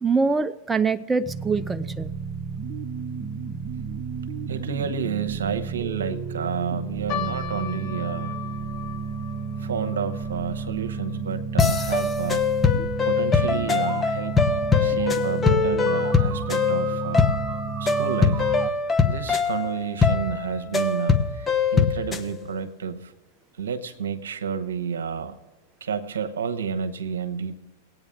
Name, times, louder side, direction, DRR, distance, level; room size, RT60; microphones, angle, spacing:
voice 1, 0.0-2.1, right 4 dB, 15° right, 10 dB, 0.4 m, -24 dB
sound 1, 1.2-18.7, right 5 dB, 30° right, 0.8 m, -32 dB
voice 2, 4.5-8.4 9.6-12.5 13.0-14.5 14.8-17.5 17.8-18.5 19.1-23.1 23.6-25.4 25.8-27.5, right 7 dB, 80° right, 9 dB, 0.9 m, -30 dB
sound 2, 7.1-13.6 13.8-13.9 14.7-15.0 15.6-15.7 16.0-16.2, left 12 dB, 50° left, 0.7 m, -39 dB
sound 3, 11.6-22.3, left 5 dB, 20° left, 0.9 m, -22 dB
19.5 x 8.9 x 3.6 m, 1.2 s
hypercardioid pair, 105°, 0 cm